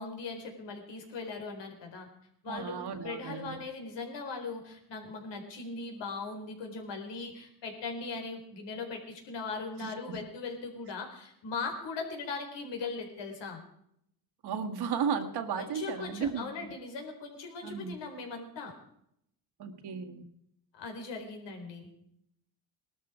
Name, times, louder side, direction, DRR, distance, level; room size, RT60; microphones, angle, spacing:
voice 1, 0.0-2.1 2.4-13.6 15.6-18.7 20.7-21.9, left 4 dB, 80° left, 3 dB, 4.2 m, -39 dB
voice 2, 2.5-3.6 9.8-10.2 14.4-16.5 17.6-18.0 19.6-20.2, right 7 dB, 65° right, 6 dB, 1.7 m, -34 dB
19.0 x 12.5 x 4.9 m, 0.74 s
cardioid pair, 115°, 42 cm